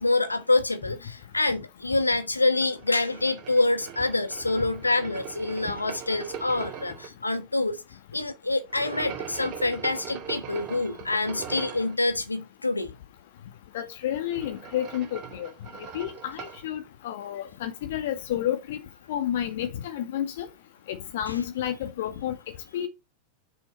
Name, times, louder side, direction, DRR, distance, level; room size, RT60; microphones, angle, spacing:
voice 1, 0.0-7.8 8.1-12.9, left 2 dB, 80° left, 1.2 m, -26 dB
sound 1, 2.5-7.1 8.7-11.9 14.0-16.6, right 8 dB, 35° right, 2.5 m, -40 dB
voice 2, 13.7-15.5 15.8-18.8 19.1-20.5 20.9-22.4 22.7-22.9, left 11 dB, 55° left, 2.1 m, -30 dB
7.7 x 6.8 x 5.3 m
figure-of-eight pair, 90°, 0 cm